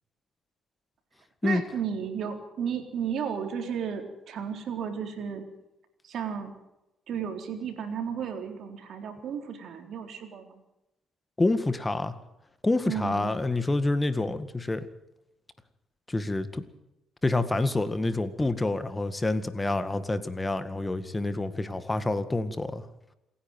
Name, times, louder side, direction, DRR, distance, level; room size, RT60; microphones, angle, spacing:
voice 1, 1.4-5.5 6.0-6.5 7.1-10.5 12.8-13.3, right 7 dB, 65° right, 5 dB, 3.9 m, -33 dB
voice 2, 11.4-12.1 12.6-14.8 16.1-16.6 17.2-22.9, left 2 dB, 20° left, 12 dB, 1.9 m, -27 dB
27.5 x 10.0 x 9.3 m, 0.89 s
supercardioid pair, 60°, 0 cm